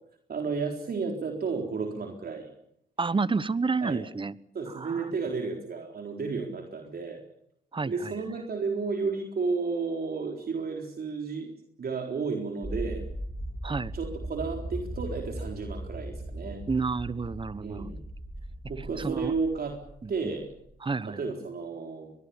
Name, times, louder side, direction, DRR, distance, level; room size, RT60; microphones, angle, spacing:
voice 1, 0.3-2.5 3.8-4.0 4.5-7.2 7.8-11.5 11.8-13.0 13.9-16.6 17.6-18.0 18.7-19.8 20.1-20.5 21.0-22.1, right 4 dB, 50° right, 3 dB, 4.1 m, -32 dB
voice 2, 3.0-4.3 4.7-5.1 7.7-8.1 13.6-13.9 16.7-17.9 19.0-19.3 20.0-20.3 20.8-21.2, right 4 dB, 25° right, 18 dB, 1.1 m, -30 dB
sound 1, 12.6-20.7, right 1 dB, ahead, 4.5 m, -38 dB
23.5 x 21.5 x 7.2 m, 0.72 s
supercardioid pair, 55°, 21 cm